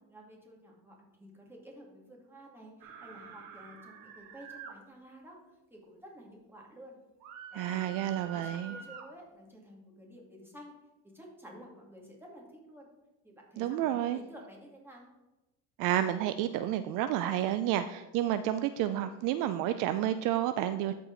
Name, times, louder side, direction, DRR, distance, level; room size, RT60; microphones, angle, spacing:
voice 1, 0.1-5.4 5.7-7.0 7.5-10.7 11.1-12.9 13.2-15.1, equal, 5° right, -2 dB, 2.4 m, -52 dB
sound 1, 2.8-4.7 7.2-9.1, right 5 dB, 75° right, 1.5 m, -47 dB
voice 2, 7.5-8.8 13.6-14.2 15.8-20.9, right 12 dB, 60° right, 11 dB, 0.5 m, -30 dB
13.0 x 4.6 x 4.0 m, 1.0 s
cardioid pair, 120°, 37 cm